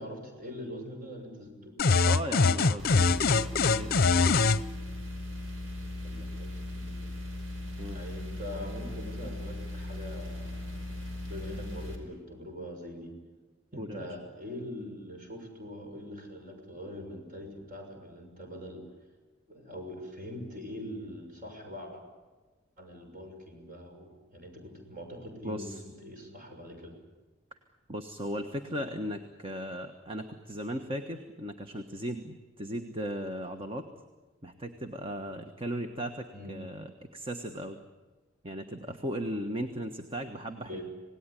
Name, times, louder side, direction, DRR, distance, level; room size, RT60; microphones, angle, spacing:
voice 1, 0.0-1.8 6.0-7.1 7.9-13.1 13.7-18.8 19.5-22.0 22.8-26.9 36.3-36.6 40.6-40.8, left 1 dB, 40° right, 3 dB, 6.5 m, -43 dB
sound 1, 1.8-4.6, left 4 dB, 50° left, 0.8 m, -23 dB
voice 2, 2.0-4.4 7.8-8.0 13.7-14.1 25.4-25.8 27.5-27.6 27.9-33.9 34.4-37.8 38.4-40.8, equal, 25° right, 6 dB, 1.4 m, -37 dB
sound 2, 2.8-12.0, left 1 dB, 70° right, 5.3 m, -38 dB
27.0 x 18.5 x 10.0 m, 1.3 s
head